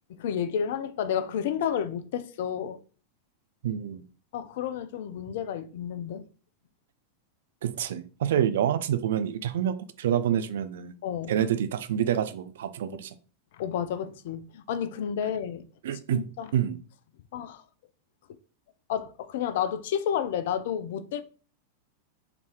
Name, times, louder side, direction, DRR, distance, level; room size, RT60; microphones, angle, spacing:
voice 1, 0.2-2.8 4.3-6.2 11.0-11.3 13.5-15.7 16.1-16.5 17.3-17.6 18.9-21.2, left 8 dB, 55° left, 0.4 m, -31 dB
voice 2, 3.6-4.1 7.6-10.9 11.3-13.1 15.8-16.3 16.5-16.8, right 10 dB, 60° right, 0.4 m, -27 dB
3.8 x 3.5 x 3.0 m
figure-of-eight pair, 90°, 0 cm